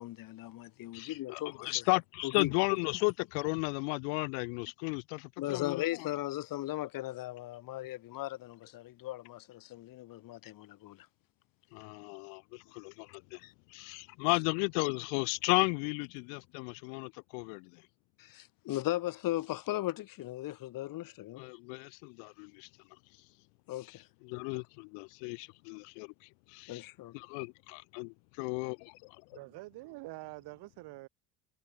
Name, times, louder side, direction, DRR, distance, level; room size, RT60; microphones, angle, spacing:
voice 1, 0.0-1.8 2.2-2.5 5.4-11.0 13.4-13.5 18.2-21.4 23.7-24.0 26.7-27.1, left 16 dB, 55° left, 1.3 m, -37 dB
voice 2, 0.9-6.1 11.7-13.4 13.7-17.8 21.4-22.7 24.2-26.1 26.5-26.8 27.1-29.2, left 40 dB or more, 75° left, 1.1 m, -34 dB
voice 3, 29.3-31.1, right 21 dB, 70° right, 4.7 m, -46 dB
hypercardioid pair, 75°, 41 cm